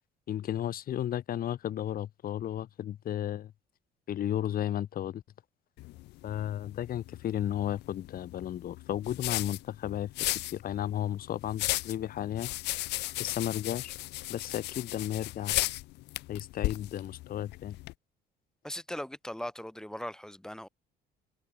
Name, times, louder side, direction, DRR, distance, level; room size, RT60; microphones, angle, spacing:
voice 1, 0.3-3.5 4.1-5.2 6.2-12.5 13.2-13.9 14.3-15.6 16.3-17.8, left 11 dB, 60° left, 6.0 m, -34 dB
sound 1, 5.8-17.9, left 20 dB, 85° left, 2.5 m, -36 dB
voice 2, 18.6-20.7, equal, 5° left, 2.3 m, -39 dB
cardioid pair, 110°, 17 cm